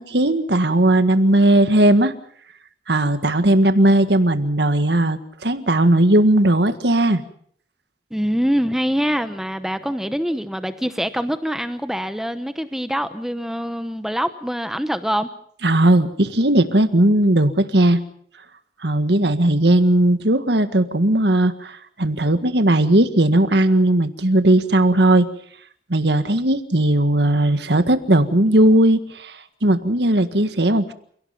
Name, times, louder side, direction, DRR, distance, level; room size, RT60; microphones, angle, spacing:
voice 1, 0.0-2.1 2.9-7.2 15.6-18.0 18.8-25.3 25.9-30.9, right 1 dB, 65° right, 1.7 m, -17 dB
voice 2, 8.1-15.3, equal, ahead, 0.9 m, -24 dB
29.5 x 17.0 x 5.9 m
head